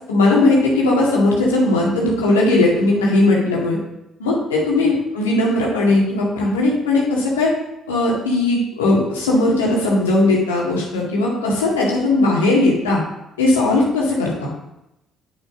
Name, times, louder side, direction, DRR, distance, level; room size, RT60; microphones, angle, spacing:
voice 1, 0.1-3.8 4.2-7.5 7.9-13.0 13.4-14.5, left 2 dB, 90° left, -3 dB, 2.0 m, -18 dB
8.8 x 6.2 x 3.7 m, 0.88 s
hypercardioid pair, 50°, 0 cm